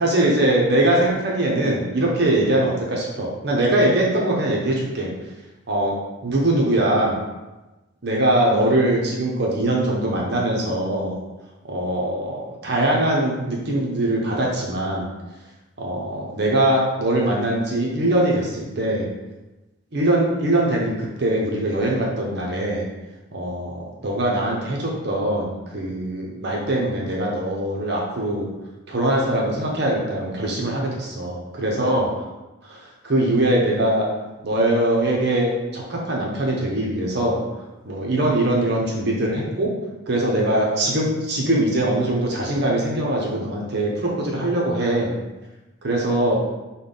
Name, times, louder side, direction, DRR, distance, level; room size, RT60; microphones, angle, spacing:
voice 1, 0.0-5.1 5.7-7.2 8.0-11.2 11.7-15.1 15.8-19.1 19.9-22.9 23.3-28.5 28.9-32.1 32.6-34.1 34.4-37.4 37.9-39.7 40.1-45.1 45.8-46.4, right 1 dB, 50° right, -2 dB, 0.7 m, -22 dB
5.3 x 2.2 x 3.8 m, 1.1 s
head